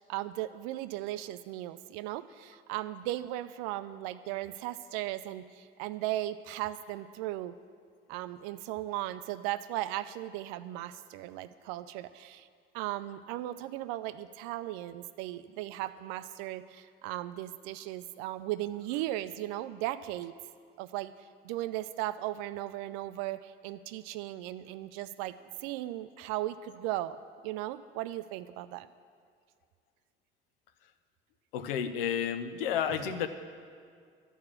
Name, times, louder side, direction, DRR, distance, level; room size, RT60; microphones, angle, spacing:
voice 1, 0.1-7.5 8.1-12.5 12.7-20.3 20.8-21.1 21.4-25.3 25.6-27.2 27.4-28.9 32.9-33.1, right 15 dB, 65° right, 13 dB, 0.5 m, -37 dB
voice 2, 31.5-33.3, left 8 dB, 75° left, 10 dB, 0.6 m, -31 dB
12.0 x 4.7 x 7.2 m, 2.2 s
figure-of-eight pair, 55°, 29 cm